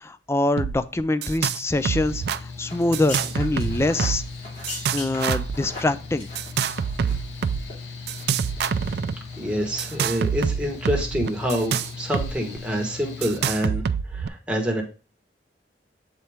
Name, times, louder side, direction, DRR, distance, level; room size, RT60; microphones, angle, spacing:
voice 1, 0.0-4.2 4.9-6.3, left 2 dB, 15° left, 13 dB, 0.3 m, -24 dB
sound 1, 0.6-1.6 1.8-2.4 2.9-4.3 4.6-5.6 6.3-7.6 8.1-9.1 9.8-12.3 12.6-12.7 13.2-14.3, right 7 dB, 65° right, 0.3 m, -26 dB
Mechanical fan, 1.7-13.6, left 4 dB, 80° left, 1.0 m, -39 dB
sound 2, 2.7-7.4 7.6-7.7 8.2-8.9 9.3-9.5 9.8-10.0 10.3-10.4, left 2 dB, 40° left, 2.3 m, -39 dB
voice 2, 9.4-13.8 14.1-14.8, equal, 5° right, 0 dB, 1.2 m, -27 dB
7.5 x 4.3 x 3.5 m, 0.35 s
head